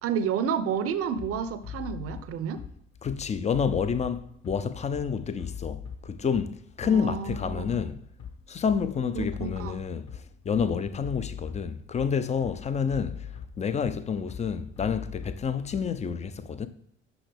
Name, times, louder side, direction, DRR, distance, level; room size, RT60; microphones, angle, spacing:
voice 1, 0.0-2.6 6.8-7.8 9.1-9.8, right 7 dB, 45° right, 0.7 m, -30 dB
Bass drum, 1.2-16.2, left 8 dB, 50° left, 1.5 m, -41 dB
voice 2, 3.0-8.0 8.5-16.7, left 6 dB, 20° left, 0.5 m, -29 dB
6.2 x 5.7 x 3.4 m
figure-of-eight pair, 55°, 34 cm